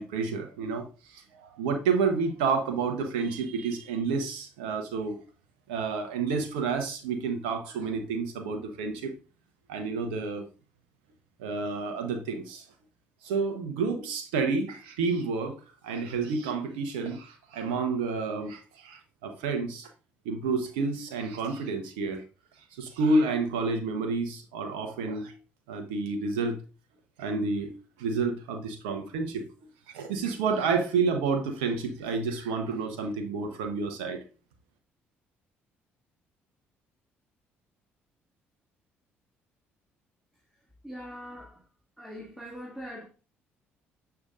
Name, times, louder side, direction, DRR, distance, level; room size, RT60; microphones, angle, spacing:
voice 1, 0.0-5.2 5.7-9.1 9.7-10.4 11.4-12.7 13.2-15.5 15.8-19.9 20.2-22.2 22.8-25.3 25.7-26.6 27.2-27.7 28.0-29.4 29.9-34.2, right 4 dB, 80° right, 0.8 m, -29 dB
voice 2, 40.8-41.6 42.0-43.1, equal, ahead, 2.2 m, -42 dB
6.9 x 6.6 x 2.4 m
hypercardioid pair, 50°, 6 cm